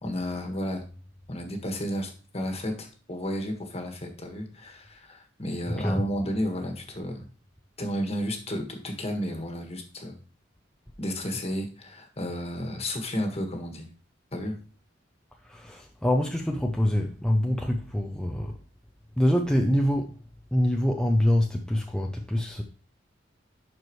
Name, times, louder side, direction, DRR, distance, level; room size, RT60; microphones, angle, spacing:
voice 1, 0.0-0.9 1.3-7.3 7.8-10.2 11.0-13.9 14.3-14.6, equal, 35° left, 1.5 m, -32 dB
voice 2, 15.4-18.6 19.2-20.2 20.5-22.6, equal, 5° left, 0.6 m, -25 dB
11.5 x 4.6 x 3.1 m
head